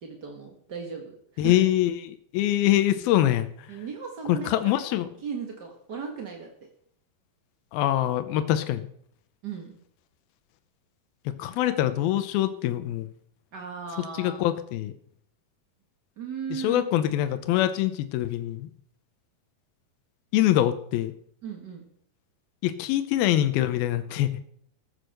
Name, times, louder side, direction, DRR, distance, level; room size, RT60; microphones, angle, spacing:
voice 1, 0.0-1.6 3.7-4.9 5.2-6.5 9.4-9.8 13.5-14.4 16.2-16.8 21.4-21.8, right 6 dB, 50° right, 2 dB, 1.2 m, -37 dB
voice 2, 1.4-3.7 4.3-5.1 7.7-8.9 11.3-13.1 14.2-14.9 16.5-18.7 20.3-21.1 22.6-24.4, left 13 dB, 90° left, 11 dB, 2.6 m, -24 dB
14.5 x 8.2 x 6.6 m, 0.64 s
omnidirectional pair, 4.2 m